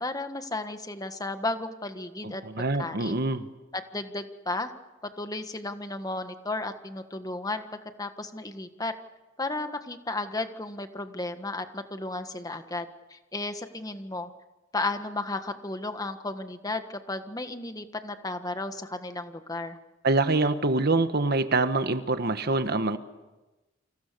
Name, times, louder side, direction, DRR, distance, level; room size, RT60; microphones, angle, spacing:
voice 1, 0.0-2.4 2.8-3.2 3.7-4.7 5.2-7.6 8.0-8.9 9.4-14.3 14.7-19.8, left 2 dB, 20° left, 8 dB, 1.5 m, -34 dB
voice 2, 2.2-3.5 20.0-23.0, right 2 dB, 55° right, 10 dB, 1.4 m, -25 dB
29.5 x 26.0 x 6.9 m, 1.1 s
head